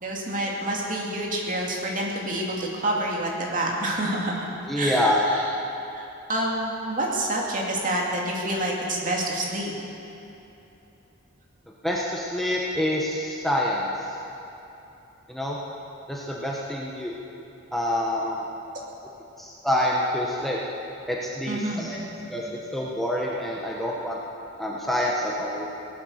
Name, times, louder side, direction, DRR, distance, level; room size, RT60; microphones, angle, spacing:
voice 1, 0.0-4.5 4.8-5.4 5.9-9.7 21.5-21.9, right 1 dB, 40° right, -2 dB, 2.6 m, -28 dB
voice 2, 4.7-5.2 11.8-13.9 15.3-15.6 16.1-17.1 17.7-18.4 19.4-20.6 21.1-22.0 22.3-22.4 22.7-24.2 24.6-25.6, left 1 dB, ahead, -4 dB, 1.2 m, -26 dB
18.0 x 11.5 x 6.6 m, 3.0 s
head